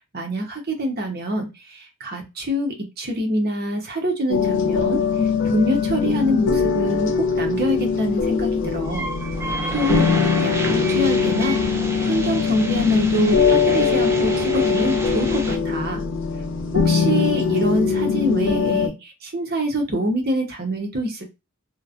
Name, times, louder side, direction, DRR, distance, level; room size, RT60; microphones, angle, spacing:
voice 1, 0.1-5.0 5.4-9.1 9.7-10.1 10.4-16.0 16.7-21.2, equal, 50° right, 2 dB, 0.8 m, -25 dB
sound 1, 4.3-18.9, left 5 dB, 60° left, 0.4 m, -21 dB
sound 2, 8.8-15.6, right 2 dB, 10° right, 0.3 m, -30 dB
3.1 x 2.1 x 2.4 m, 0.24 s
head